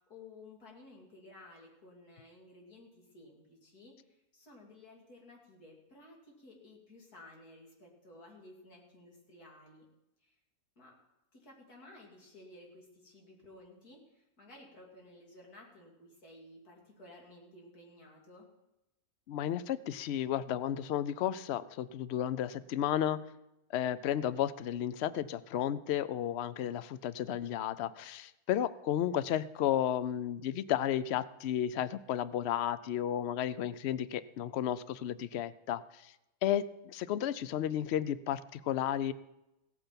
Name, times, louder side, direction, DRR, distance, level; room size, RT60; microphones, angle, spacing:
voice 1, 0.0-9.8 10.2-10.3 10.8-10.9 11.3-18.5, left 2 dB, 80° left, -1 dB, 3.2 m, -55 dB
voice 2, 19.3-23.2 23.7-36.1 36.4-39.1, left 10 dB, 65° left, 15 dB, 0.6 m, -33 dB
16.0 x 8.9 x 5.8 m, 0.92 s
omnidirectional pair, 1.6 m